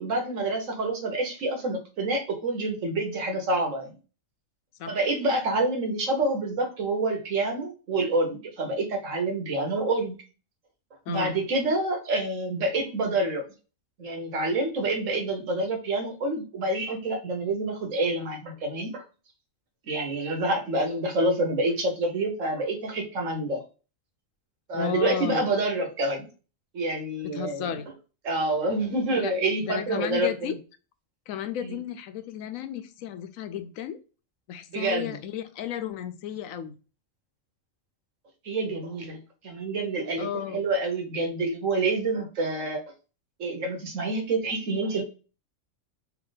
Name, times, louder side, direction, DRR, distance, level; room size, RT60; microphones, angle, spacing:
voice 1, 0.0-3.9 4.9-10.2 11.1-13.4 14.0-19.0 19.8-23.6 24.7-26.3 26.7-27.7 28.2-30.3 34.7-35.2 38.4-39.2 39.4-40.3 40.5-42.8 43.4-45.0, right 2 dB, 75° right, 4 dB, 1.4 m, -27 dB
voice 2, 24.7-25.5 27.3-27.9 29.2-29.3 29.6-30.6 31.3-34.0 34.5-36.7 40.2-40.6, left 9 dB, 85° left, 9 dB, 1.0 m, -33 dB
3.4 x 2.9 x 3.9 m, 0.34 s
omnidirectional pair, 1.4 m